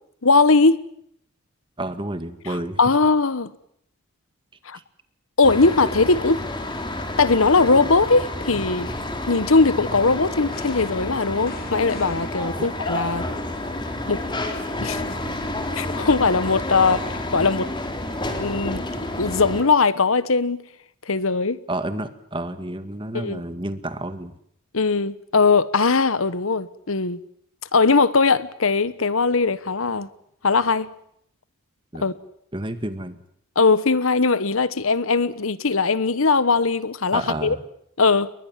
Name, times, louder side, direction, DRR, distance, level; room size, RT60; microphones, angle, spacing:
voice 1, 0.2-0.8 2.8-3.5 4.6-4.8 5.4-6.4 7.2-8.9 9.3-13.3 14.1-14.2 14.8-15.0 15.7-17.0 17.3-17.7 18.4-18.8 19.2-20.6 21.1-21.6 23.1-23.4 24.7-27.2 27.7-30.1 30.4-30.9 32.0-32.1 33.5-37.6 38.0-38.3, left 4 dB, 70° left, 1.2 m, -20 dB
voice 2, 1.8-2.8 4.7-4.8 12.5-12.7 16.7-17.1 21.7-24.4 31.9-32.1 32.5-33.2 37.1-37.6, right 1 dB, 25° right, 2.0 m, -30 dB
sound 1, 5.4-19.6, left 1 dB, 20° left, 3.7 m, -30 dB
sound 2, 10.5-13.3 15.5-16.9, left 3 dB, 45° left, 3.9 m, -45 dB
30.0 x 22.5 x 7.5 m
head